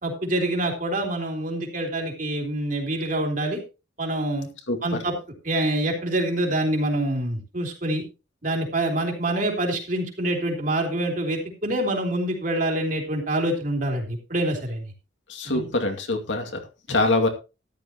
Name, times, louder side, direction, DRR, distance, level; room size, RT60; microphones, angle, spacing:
voice 1, 0.0-3.6 4.0-4.5 4.8-5.1 5.4-8.0 8.4-14.9 15.4-15.7, right 1 dB, 45° right, 1 dB, 3.4 m, -26 dB
voice 2, 15.3-16.6 16.9-17.3, left 2 dB, 80° left, 3 dB, 2.4 m, -24 dB
13.5 x 11.0 x 3.0 m, 0.29 s
head